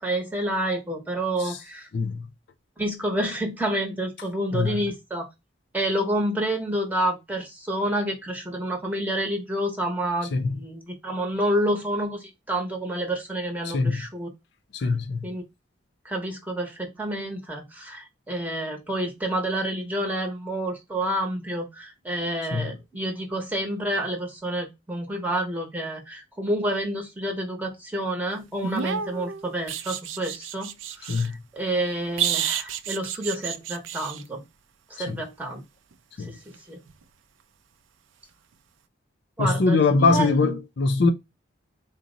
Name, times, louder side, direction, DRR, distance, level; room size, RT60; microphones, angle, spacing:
voice 1, 0.0-1.9 2.8-5.3 5.7-14.3 14.8-15.0 15.2-15.4 16.0-34.4 34.9-35.6 36.3-36.8 39.4-40.6, right 1 dB, 10° right, 0.8 m, -29 dB
voice 2, 1.9-2.3 4.5-4.8 10.3-10.6 13.6-14.0 14.7-15.3 22.5-22.7 31.1-31.4 35.1-35.2 36.2-36.3 39.4-41.1, left 3 dB, 55° left, 0.4 m, -23 dB
sound 1, 28.6-31.3 32.2-34.2 36.9-37.0, right 8 dB, 75° right, 0.4 m, -30 dB
4.0 x 2.1 x 3.7 m
head